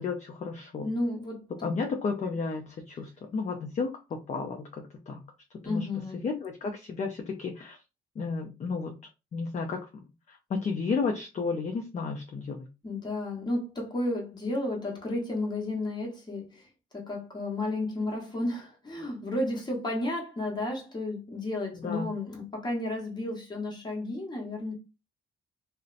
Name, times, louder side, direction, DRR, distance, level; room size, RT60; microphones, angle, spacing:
voice 1, 0.0-0.9 1.6-5.2 5.6-5.9 6.2-7.8 8.2-8.9 9.3-12.7 21.8-22.1, left 4 dB, 35° left, 0.5 m, -33 dB
voice 2, 0.8-1.8 5.6-6.3 12.8-16.6 16.9-24.7, left 2 dB, 20° left, 1.0 m, -32 dB
2.6 x 2.0 x 2.5 m
cardioid pair, 90°, 20 cm